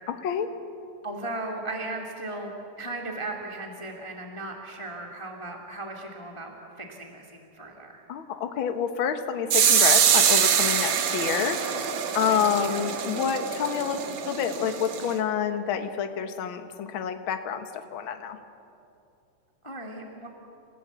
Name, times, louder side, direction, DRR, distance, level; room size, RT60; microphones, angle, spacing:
voice 1, 0.1-0.5 8.1-11.6 12.1-18.4, left 8 dB, 55° left, 7 dB, 1.6 m, -28 dB
voice 2, 1.0-2.5 2.8-8.0 12.3-12.9 19.6-20.3, right 2 dB, 10° left, 1 dB, 1.8 m, -37 dB
cooling down hot saucepan with water, 9.5-15.1, right 8 dB, 55° right, 1.6 m, -24 dB
28.0 x 16.0 x 8.2 m, 2.6 s
omnidirectional pair, 3.6 m